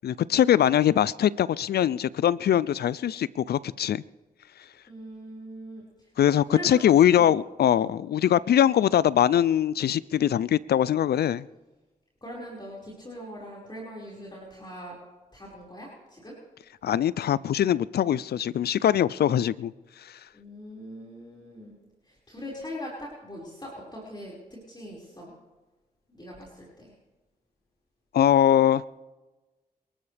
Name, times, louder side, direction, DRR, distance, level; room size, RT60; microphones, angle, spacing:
voice 1, 0.0-4.0 6.2-11.4 16.8-19.7 28.1-28.8, left 10 dB, 80° left, 20 dB, 0.4 m, -22 dB
voice 2, 4.9-6.1 6.5-6.8 7.1-7.4 7.8-8.0 12.2-15.0 15.3-16.4 20.3-21.7 22.0-25.3 26.1-26.9, equal, 25° left, -5 dB, 5.1 m, -41 dB
27.0 x 12.5 x 3.4 m, 1.2 s
cardioid pair, 45°, 16 cm